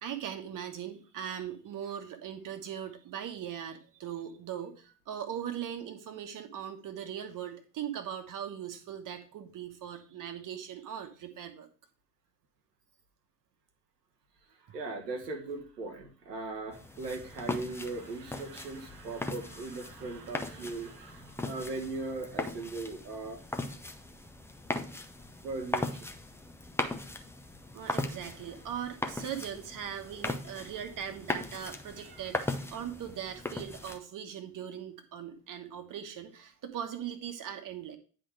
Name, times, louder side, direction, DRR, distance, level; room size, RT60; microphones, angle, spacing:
voice 1, 0.0-11.7 14.7-14.8 27.7-38.0, right 9 dB, 40° right, 7 dB, 1.3 m, -40 dB
voice 2, 14.6-23.4 25.4-26.1, right 3 dB, 75° right, 3 dB, 1.1 m, -39 dB
sound 1, 16.7-34.0, left 2 dB, 5° left, 0.7 m, -38 dB
9.8 x 3.8 x 4.8 m, 0.38 s
figure-of-eight pair, 55°, 48 cm